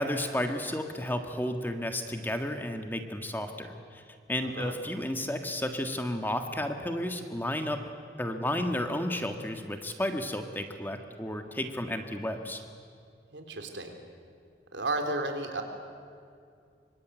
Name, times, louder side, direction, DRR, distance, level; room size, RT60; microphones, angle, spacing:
voice 1, 0.0-4.0 4.3-7.8 8.2-12.6, left 1 dB, 10° left, 6 dB, 1.6 m, -32 dB
voice 2, 4.4-4.8 13.3-13.9 14.7-15.6, right 2 dB, 90° right, 4 dB, 3.6 m, -33 dB
26.5 x 24.0 x 9.3 m, 2.4 s
head